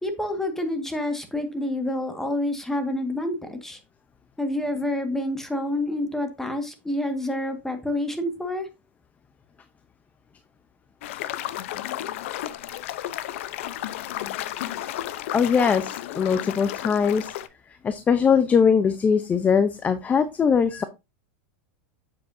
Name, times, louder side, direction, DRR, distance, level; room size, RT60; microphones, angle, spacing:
voice 1, 0.0-3.8 4.4-8.7, left 1 dB, 5° left, 6 dB, 1.8 m, -28 dB
sound 1, 11.0-17.5, left 13 dB, 70° left, 0.8 m, -33 dB
voice 2, 15.3-17.3 17.8-20.8, left 6 dB, 20° left, 11 dB, 0.7 m, -21 dB
8.4 x 7.7 x 2.7 m, 0.24 s
supercardioid pair, 125°, 7 cm